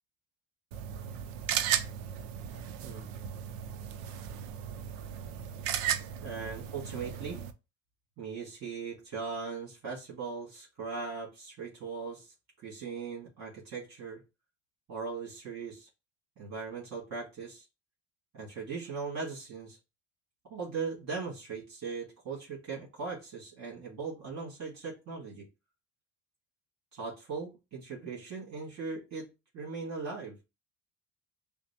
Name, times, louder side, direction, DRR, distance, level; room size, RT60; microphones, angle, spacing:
sound 1, 0.7-7.5, right 9 dB, 90° right, 0.6 m, -35 dB
voice 1, 6.2-7.4 8.2-12.3 12.6-14.2 14.9-15.9 16.4-17.6 18.3-19.8 20.5-25.5 26.9-29.3 29.5-30.4, right 5 dB, 45° right, -4 dB, 2.1 m, -39 dB
5.8 x 2.1 x 2.8 m, 0.27 s
supercardioid pair, 90°, 37 cm